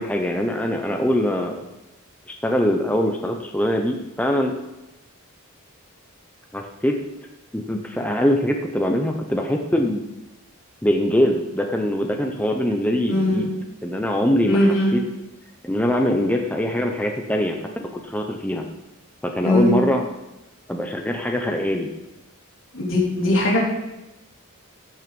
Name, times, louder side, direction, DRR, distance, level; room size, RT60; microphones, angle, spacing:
voice 1, 0.0-1.6 2.3-4.6 6.5-7.0 7.5-10.0 10.8-13.5 13.8-15.0 15.6-18.6 19.2-20.0 20.7-21.9, equal, 5° left, 2 dB, 0.7 m, -23 dB
voice 2, 13.1-13.5 14.5-14.9 19.4-19.8 22.7-23.6, left 1 dB, 65° left, -4 dB, 3.8 m, -20 dB
15.0 x 6.1 x 5.3 m, 0.97 s
head